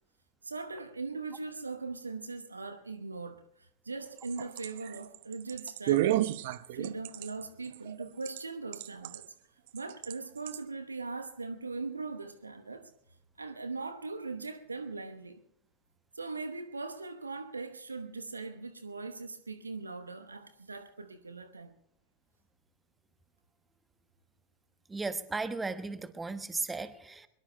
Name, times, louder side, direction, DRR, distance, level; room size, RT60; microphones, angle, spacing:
voice 1, 0.4-6.3 6.7-9.3 9.7-12.9 13.4-15.4 16.1-21.8, right 3 dB, 80° right, 1.0 m, -40 dB
sound 1, 4.0-8.4 8.7-9.3 9.8-10.1 10.5-10.6, right 14 dB, 50° right, 0.7 m, -31 dB
voice 2, 24.9-27.3, right 3 dB, 10° right, 1.1 m, -35 dB
23.0 x 22.5 x 2.2 m
figure-of-eight pair, 90°, 0 cm